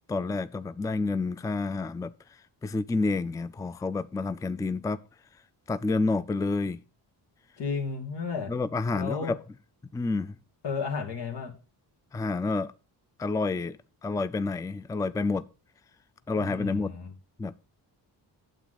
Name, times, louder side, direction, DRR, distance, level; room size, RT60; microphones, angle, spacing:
voice 1, 0.1-2.1 2.6-5.0 5.7-6.8 8.5-9.4 9.9-10.4 12.1-12.7 13.2-13.8 14.0-15.4 16.3-16.9 17.4-17.5, left 3 dB, 10° left, 0.4 m, -29 dB
voice 2, 7.6-8.5 8.9-9.3 10.6-11.5 16.4-17.1, left 5 dB, 85° left, 2.5 m, -33 dB
9.1 x 7.5 x 4.0 m
cardioid pair, 105°, 40 cm